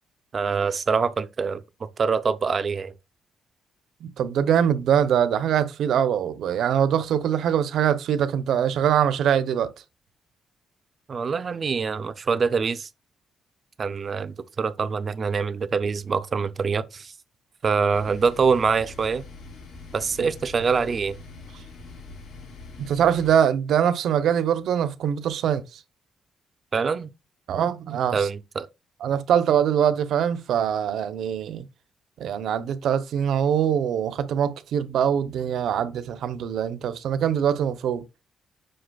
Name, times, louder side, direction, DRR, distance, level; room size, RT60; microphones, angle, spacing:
voice 1, 0.3-2.9 11.1-12.9 13.8-17.1 17.6-19.2 19.9-21.2 26.7-27.1 28.1-28.7, right 5 dB, 30° right, 0.5 m, -25 dB
voice 2, 4.0-9.7 20.2-20.3 22.8-25.8 27.5-28.3 29.0-31.7 32.2-38.0, right 9 dB, 70° right, 0.7 m, -23 dB
sound 1, 17.9-23.3, left 3 dB, 85° left, 3.2 m, -43 dB
7.7 x 5.9 x 2.3 m
cardioid pair, 170°, 0 cm